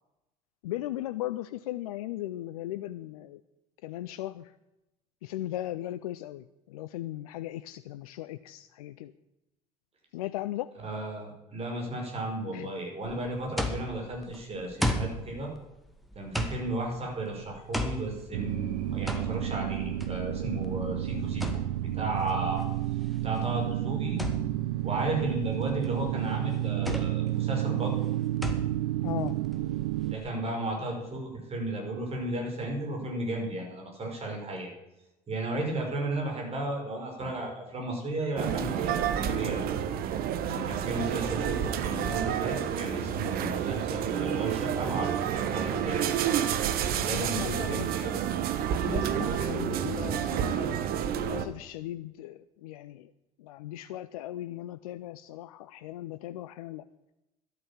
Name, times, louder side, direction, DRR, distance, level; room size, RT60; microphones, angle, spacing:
voice 1, 0.6-3.4 3.8-4.5 5.2-9.1 10.1-10.7 12.5-12.7 29.0-29.4 35.5-35.7 47.0-47.9 48.9-50.8 51.2-53.1 53.4-56.8, left 14 dB, 70° left, 14 dB, 0.5 m, -37 dB
voice 2, 10.8-15.5 16.2-21.5 21.8-22.6 23.2-24.2 24.8-28.1 30.1-34.7 35.3-39.6 40.4-46.1 46.9-48.2 49.0-49.2, right 1 dB, 30° right, 1 dB, 5.3 m, -34 dB
sound 1, 13.0-30.3, equal, ahead, 1.9 m, -37 dB
sound 2, 18.3-30.2, right 14 dB, 70° right, 0.5 m, -31 dB
sound 3, 38.4-51.5, right 9 dB, 50° right, 1.1 m, -29 dB
12.0 x 9.2 x 7.3 m, 0.94 s
figure-of-eight pair, 60°, 20 cm